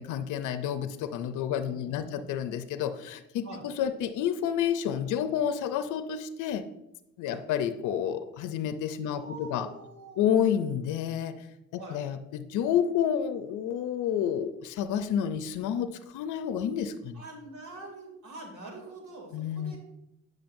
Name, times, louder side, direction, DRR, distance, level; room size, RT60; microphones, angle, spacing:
voice 1, 0.0-6.6 7.2-9.7 10.2-11.4 11.7-17.2 19.3-19.8, left 9 dB, 80° left, 10 dB, 0.5 m, -30 dB
voice 2, 1.5-2.3 3.4-3.6 7.2-7.4 9.1-10.4 11.8-12.0 17.1-19.8, right 2 dB, 70° right, 0 dB, 2.5 m, -45 dB
8.7 x 6.1 x 2.6 m, 0.89 s
cardioid pair, 90°, 30 cm